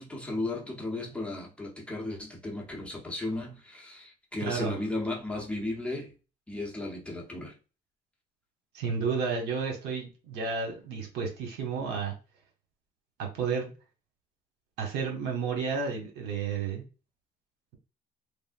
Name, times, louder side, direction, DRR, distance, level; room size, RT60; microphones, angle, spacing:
voice 1, 0.0-6.1 6.5-7.5, left 2 dB, 5° left, 0.8 m, -35 dB
voice 2, 4.4-4.8 8.7-12.1 13.2-13.7 14.8-16.8, right 5 dB, 85° right, 1.0 m, -31 dB
3.4 x 2.0 x 2.5 m
cardioid pair, 110°, 17 cm